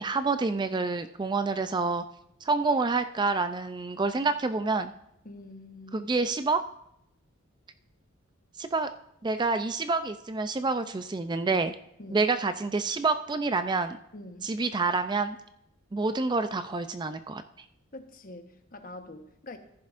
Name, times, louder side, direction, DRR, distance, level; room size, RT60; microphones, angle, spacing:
voice 1, 0.0-2.0 2.4-4.9 5.9-6.6 8.6-8.9 9.2-11.7 12.1-14.0 14.4-15.4 15.9-17.4, right 3 dB, 20° right, 10 dB, 0.4 m, -27 dB
voice 2, 5.2-6.1 12.0-12.3 14.1-14.5 17.9-19.6, left 2 dB, 40° left, 6 dB, 1.1 m, -45 dB
15.0 x 10.5 x 2.5 m, 0.78 s
head